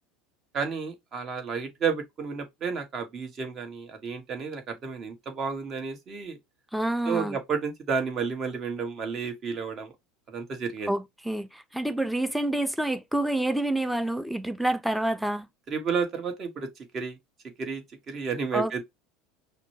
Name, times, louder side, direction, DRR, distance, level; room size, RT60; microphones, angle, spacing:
voice 1, 0.5-6.4 7.0-9.9 10.3-10.9 15.7-16.7 16.9-17.2 17.6-18.8, right 5 dB, 40° right, 1.6 m, -31 dB
voice 2, 6.7-7.4 10.9-15.5 18.5-18.8, right 1 dB, ahead, 0.6 m, -28 dB
5.8 x 2.3 x 3.0 m
hypercardioid pair, 75°, 0 cm